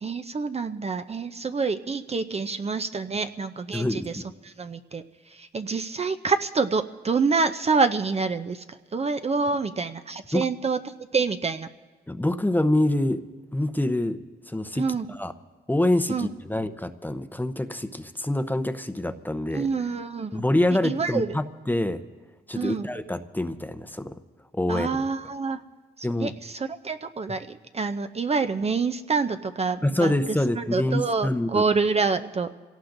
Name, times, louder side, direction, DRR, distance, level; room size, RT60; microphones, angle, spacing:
voice 1, 0.0-5.0 5.3-11.7 14.7-15.1 16.1-16.3 19.5-20.4 20.8-21.4 22.6-22.9 24.7-25.6 26.0-30.1 30.6-32.5, right 4 dB, 35° right, 9 dB, 0.5 m, -27 dB
voice 2, 3.7-4.2 10.3-10.4 12.1-13.2 13.5-14.2 14.5-15.3 15.7-19.7 20.3-22.0 22.5-24.2 24.5-25.1 26.0-26.3 29.8-31.6, left 1 dB, 10° left, 10 dB, 0.7 m, -26 dB
26.0 x 17.5 x 2.6 m, 1.4 s
cardioid pair, 80°, 19 cm